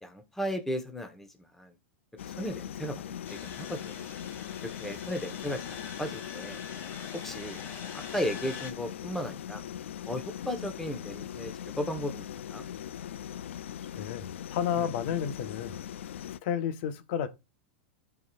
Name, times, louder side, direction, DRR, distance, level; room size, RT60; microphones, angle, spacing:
voice 1, 0.0-1.3 1.5-1.7 2.2-4.1 4.6-6.6 7.2-7.6 7.9-9.6 10.0-12.7 14.8-14.9, equal, 5° left, 1.4 m, -36 dB
sound 1, 2.2-16.4, left 10 dB, 85° left, 0.4 m, -40 dB
sound 2, 3.2-8.7, left 6 dB, 35° left, 2.7 m, -44 dB
voice 2, 13.9-15.8 16.4-17.3, left 8 dB, 60° left, 1.3 m, -31 dB
14.0 x 4.8 x 2.6 m
hypercardioid pair, 120°, 7 cm